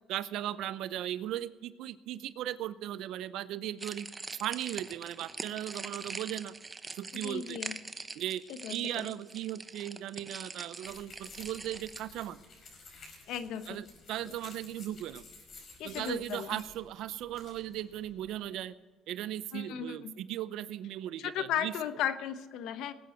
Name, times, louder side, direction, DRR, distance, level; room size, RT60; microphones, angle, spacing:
voice 1, 0.1-4.1 4.4-6.5 7.0-7.6 8.2-8.4 8.7-12.4 13.7-15.2 15.8-18.7 19.1-21.7, right 12 dB, 75° right, 16 dB, 0.6 m, -37 dB
sound 1, 3.8-12.0, right 3 dB, 25° right, 0.9 m, -43 dB
voice 2, 7.2-7.8 8.6-9.1 13.3-13.8 15.8-16.6 19.5-20.1 21.2-22.9, left 9 dB, 75° left, 12 dB, 1.0 m, -35 dB
sound 2, 10.9-18.4, left 3 dB, 50° left, 5.1 m, -53 dB
19.5 x 9.5 x 4.5 m, 1.3 s
cardioid pair, 90°, 0 cm